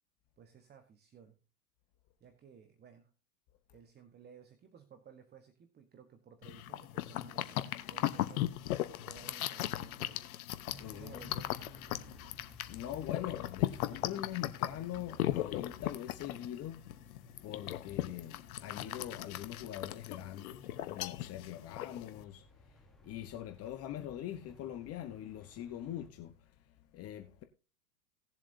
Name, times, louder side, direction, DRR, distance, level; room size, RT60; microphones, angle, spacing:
voice 1, 0.4-1.4 2.2-3.1 3.7-10.3 10.9-11.6, right 7 dB, 20° right, 1.2 m, -57 dB
sound 1, 6.4-22.2, left 14 dB, 60° left, 1.1 m, -38 dB
voice 2, 10.7-11.2 12.7-16.9 17.2-27.4, left 12 dB, 30° left, 1.0 m, -43 dB
sound 2, 10.7-26.1, left 1 dB, ahead, 1.2 m, -58 dB
18.5 x 7.5 x 2.7 m
hypercardioid pair, 110°, 48 cm